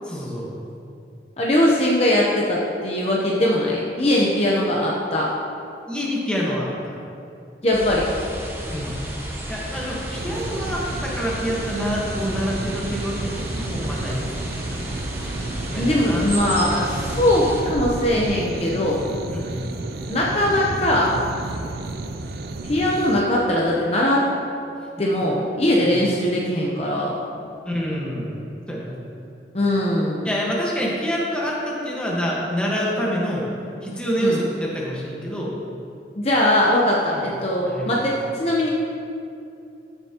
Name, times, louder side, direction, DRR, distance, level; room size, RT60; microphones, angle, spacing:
voice 1, 0.0-0.5 5.9-7.0 8.7-9.0 9.5-14.2 15.7-16.3 19.3-19.7 21.5-21.7 25.9-26.0 27.6-29.0 30.2-33.5 33.8-35.5 37.1-37.3 37.7-38.0, equal, 5° left, -5 dB, 1.4 m, -27 dB
voice 2, 1.4-5.3 7.6-8.1 15.8-19.0 20.1-21.2 22.6-24.3 25.0-27.2 29.5-30.3 34.2-34.4 36.2-38.7, left 1 dB, 35° left, -4 dB, 0.8 m, -20 dB
sound 1, 7.7-17.6, right 1 dB, 15° right, 1.0 m, -32 dB
sound 2, 10.1-23.2, right 2 dB, 55° right, 0.5 m, -32 dB
14.0 x 7.0 x 3.0 m, 2.6 s
head